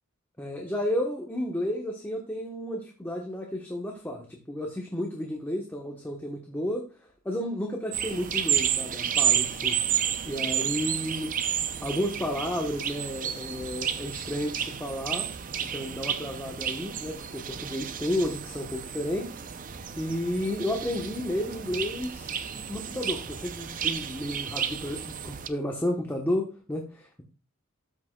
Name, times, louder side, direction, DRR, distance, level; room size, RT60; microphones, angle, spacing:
voice 1, 0.4-9.8 10.2-11.3 11.8-15.3 15.6-19.3 20.0-27.2, left 1 dB, 10° left, 0 dB, 0.9 m, -32 dB
sound 1, 7.9-25.5, right 9 dB, 40° right, 0.5 m, -31 dB
13.0 x 6.1 x 2.2 m, 0.35 s
head